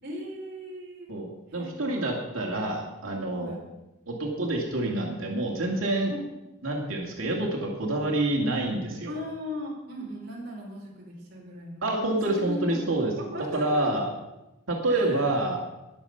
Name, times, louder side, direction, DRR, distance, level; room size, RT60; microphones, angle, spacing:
voice 1, 0.0-1.1 1.5-2.1 3.2-3.6 6.1-6.2 9.1-11.9 12.2-12.8 13.3-14.0 14.9-15.3, equal, 50° right, -3 dB, 4.0 m, -38 dB
voice 2, 1.1-3.6 4.1-6.1 6.6-9.1 11.8-13.1 13.5-14.1 14.7-15.6, right 2 dB, 90° right, -1 dB, 2.2 m, -27 dB
20.5 x 7.3 x 5.7 m, 0.98 s
head